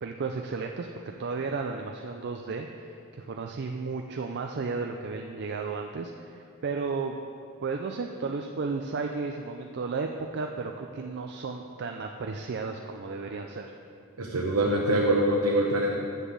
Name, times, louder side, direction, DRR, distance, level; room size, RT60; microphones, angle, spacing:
voice 1, 0.0-0.9 1.2-7.1 7.6-13.7, right 4 dB, 50° right, 3 dB, 0.4 m, -33 dB
voice 2, 14.2-15.9, right 1 dB, 70° right, -2 dB, 0.9 m, -24 dB
7.3 x 6.9 x 7.4 m, 2.5 s
head